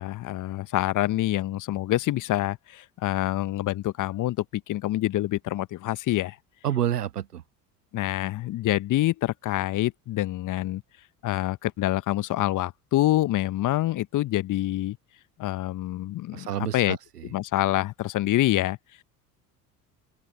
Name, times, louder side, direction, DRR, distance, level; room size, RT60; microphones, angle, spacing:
voice 1, 0.0-6.4 7.9-10.8 11.2-15.0 15.4-16.5 16.7-17.0 17.3-18.8, left 15 dB, 40° left, 1.3 m, -26 dB
voice 2, 6.6-7.4 16.3-17.3, right 11 dB, 80° right, 1.1 m, -29 dB
open air
figure-of-eight pair, 65°, 46 cm